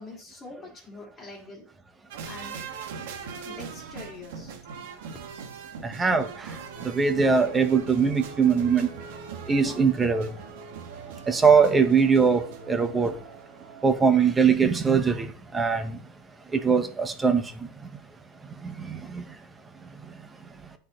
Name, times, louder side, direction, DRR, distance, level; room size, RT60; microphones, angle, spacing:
voice 1, 0.0-1.7 2.2-2.6 3.0-3.1 3.4-4.6, left 3 dB, 20° left, 1.7 m, -44 dB
sound 1, 2.1-13.3 13.6-13.7, right 6 dB, 80° right, 1.3 m, -41 dB
sound 2, 6.7-14.4, right 4 dB, 55° right, 1.7 m, -45 dB
voice 2, 6.9-8.9 9.5-10.3 11.3-12.4 12.7-13.1 13.8-15.3 15.5-15.8 16.6-17.4 19.1-19.2, right 5 dB, 15° right, 0.7 m, -21 dB
10.0 x 4.4 x 2.9 m
supercardioid pair, 145°, 0 cm